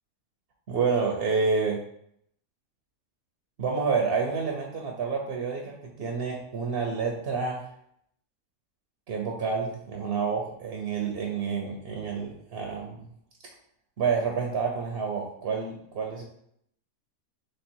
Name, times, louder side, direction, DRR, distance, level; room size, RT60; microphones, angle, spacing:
voice 1, 0.7-1.8 3.6-7.7 9.1-13.0 14.0-16.2, right 5 dB, 55° right, 0 dB, 0.7 m, -29 dB
3.2 x 3.1 x 4.4 m, 0.70 s
omnidirectional pair, 1.5 m